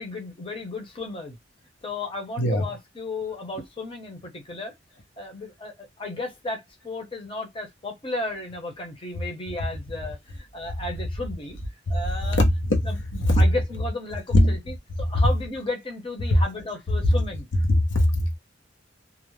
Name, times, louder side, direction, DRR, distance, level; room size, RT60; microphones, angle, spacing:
voice 1, 0.0-1.4 1.8-4.7 5.2-11.6 11.9-12.4 12.8-13.0 13.3-17.5, left 2 dB, 30° left, 0.7 m, -34 dB
voice 2, 12.3-12.9 13.2-13.4 14.3-14.6 15.2-15.3 16.3-16.4 17.0-17.2 17.7-18.4, left 1 dB, 85° left, 0.7 m, -20 dB
2.5 x 2.0 x 3.1 m
head